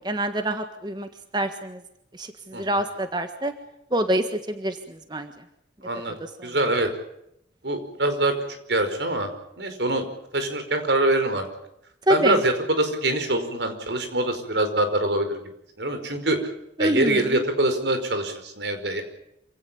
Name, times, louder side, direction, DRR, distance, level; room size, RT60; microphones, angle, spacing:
voice 1, 0.0-1.8 2.1-3.5 3.9-5.3 6.2-6.6 12.1-12.4 16.8-17.4, right 1 dB, 25° right, 7 dB, 1.5 m, -26 dB
voice 2, 5.8-6.9 7.6-8.3 8.7-9.3 9.6-10.0 10.3-11.4 12.1-15.4 15.8-16.4 16.8-19.0, right 1 dB, 75° right, 8 dB, 5.1 m, -24 dB
27.0 x 17.5 x 8.7 m, 0.78 s
head